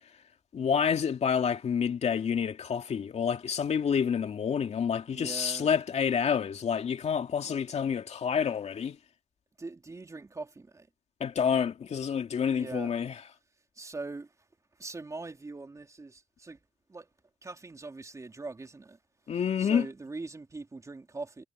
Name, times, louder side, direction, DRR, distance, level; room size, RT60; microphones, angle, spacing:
voice 1, 0.5-9.0 11.2-13.2 19.3-19.9, left 7 dB, 40° left, 2.5 m, -28 dB
voice 2, 5.1-5.7 7.4-7.6 9.6-10.9 12.5-12.9 13.8-14.3 14.8-16.6 16.9-17.1 17.4-19.0 19.6-21.4, right 3 dB, 20° right, 3.6 m, -41 dB
cardioid pair, 110°, 17 cm